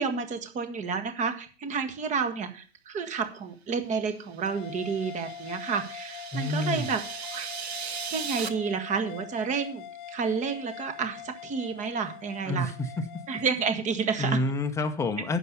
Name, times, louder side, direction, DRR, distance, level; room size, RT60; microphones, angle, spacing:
voice 1, 0.0-7.0 7.3-7.5 7.7-12.7 13.3-14.4, right 5 dB, 20° right, 9 dB, 1.7 m, -30 dB
sound 1, 4.3-8.5, right 7 dB, 70° right, 1.1 m, -38 dB
sound 2, 4.5-13.5, left 10 dB, 50° left, 1.2 m, -43 dB
voice 2, 6.3-6.9 12.5-12.7 14.2-15.4, left 2 dB, 10° left, 6 dB, 1.0 m, -28 dB
9.6 x 7.0 x 7.0 m, 0.38 s
figure-of-eight pair, 110°, 33 cm